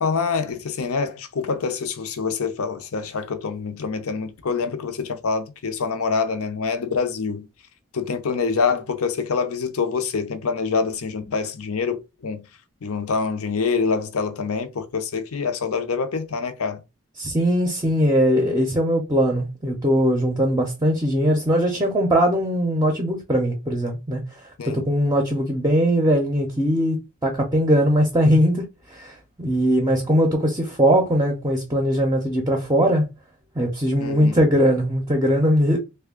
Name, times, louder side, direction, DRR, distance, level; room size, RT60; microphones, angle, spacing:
voice 1, 0.0-7.4 7.9-12.4 12.8-16.8 24.6-24.9 34.0-34.4, left 5 dB, 85° left, 0.6 m, -26 dB
voice 2, 17.2-33.1 33.6-35.8, equal, 15° right, 0.5 m, -20 dB
3.3 x 2.2 x 3.6 m
head